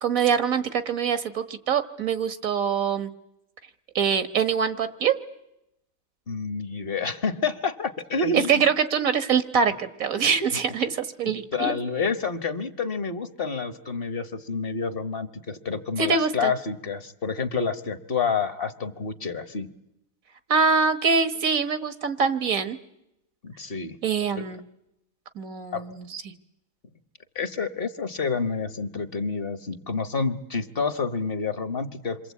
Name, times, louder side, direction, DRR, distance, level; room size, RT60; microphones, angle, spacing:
voice 1, 0.0-3.1 4.0-5.2 8.3-11.8 16.0-16.5 20.5-22.8 24.0-24.6 25.4-26.3, right 6 dB, 80° right, 11 dB, 1.8 m, -24 dB
voice 2, 6.3-8.6 10.5-10.6 11.5-19.7 23.4-24.0 24.4-24.5 25.7-25.9 27.3-32.2, left 4 dB, 45° left, 11 dB, 1.3 m, -28 dB
27.5 x 24.5 x 8.4 m, 0.87 s
omnidirectional pair, 1.4 m